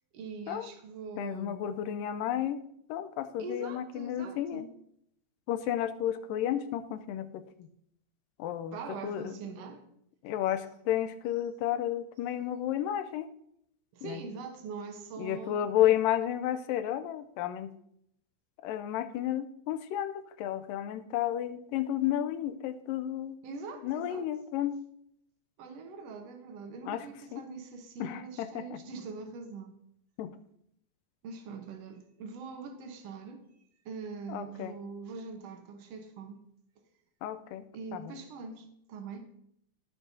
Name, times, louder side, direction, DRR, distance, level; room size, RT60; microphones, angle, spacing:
voice 1, 0.1-1.7 3.4-4.7 8.7-9.9 13.9-15.6 23.4-24.3 25.6-29.8 31.2-33.4 33.8-36.4 37.7-39.3, right 4 dB, 85° right, 4 dB, 1.4 m, -43 dB
voice 2, 1.2-2.6 2.9-4.6 5.5-7.7 8.4-8.8 9.0-9.3 10.2-13.3 14.0-14.2 15.2-17.7 18.6-23.4 23.8-24.8 26.9-27.0 27.3-27.4 28.0-28.2 28.5-28.8 30.2-30.3 34.3-34.8 37.2-37.6, left 11 dB, 80° left, 10 dB, 2.1 m, -32 dB
18.0 x 6.1 x 2.7 m, 0.71 s
omnidirectional pair, 4.4 m